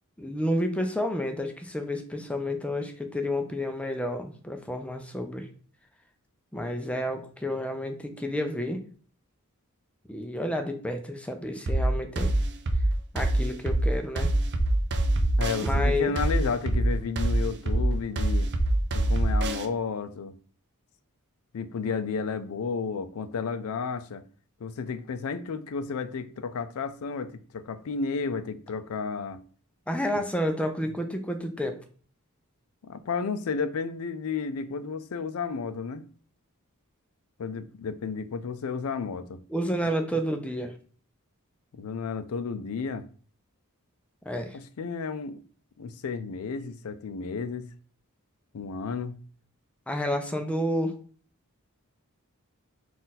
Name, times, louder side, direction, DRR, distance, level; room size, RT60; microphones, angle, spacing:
voice 1, 0.2-5.5 6.5-8.8 10.1-12.3 13.1-14.3 15.6-16.1 29.9-31.8 39.5-40.7 44.2-44.6 49.9-51.0, equal, 5° left, 0.4 m, -30 dB
sound 1, 11.7-19.7, right 1 dB, 50° right, 0.5 m, -24 dB
voice 2, 15.4-18.5 18.9-20.3 21.5-24.2 24.6-29.4 32.8-36.0 37.4-39.4 41.7-43.0 44.5-45.4 45.8-47.7 48.5-49.2, left 5 dB, 70° left, 0.4 m, -32 dB
3.9 x 2.4 x 4.1 m
head